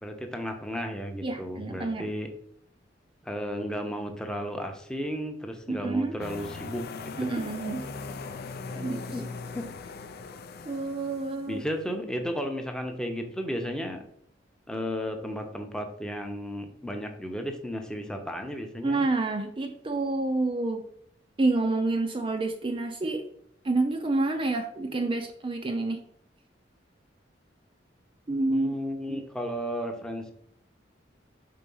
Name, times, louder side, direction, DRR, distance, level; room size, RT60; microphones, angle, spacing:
voice 1, 0.0-2.3 3.2-6.8 7.2-7.4 9.1-9.2 9.5-9.7 11.5-14.0 14.7-19.1 28.5-30.3, equal, 5° left, 4 dB, 0.7 m, -34 dB
voice 2, 1.2-2.1 5.7-6.2 7.2-7.8 8.7-9.1 10.7-11.6 18.8-20.9 21.4-23.2 23.6-26.0 28.3-28.7 29.1-29.2, right 2 dB, 30° right, 5 dB, 0.5 m, -28 dB
sound 1, 6.2-11.7, left 4 dB, 55° left, 0.5 m, -40 dB
4.7 x 3.8 x 5.4 m, 0.68 s
head